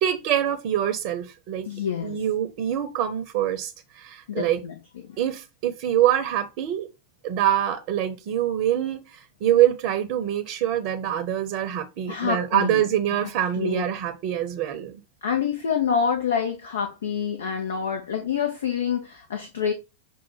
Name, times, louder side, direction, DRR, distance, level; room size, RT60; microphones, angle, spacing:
voice 1, 0.0-1.7 2.0-4.6 5.2-6.9 7.2-15.0, right 11 dB, 45° right, 0.9 m, -25 dB
voice 2, 1.6-2.2 4.3-4.7 5.0-5.2 12.1-12.8 13.1-13.3 13.6-13.8 15.2-19.7, left 7 dB, 65° left, 1.0 m, -27 dB
7.2 x 2.5 x 5.7 m
figure-of-eight pair, 90°, 0 cm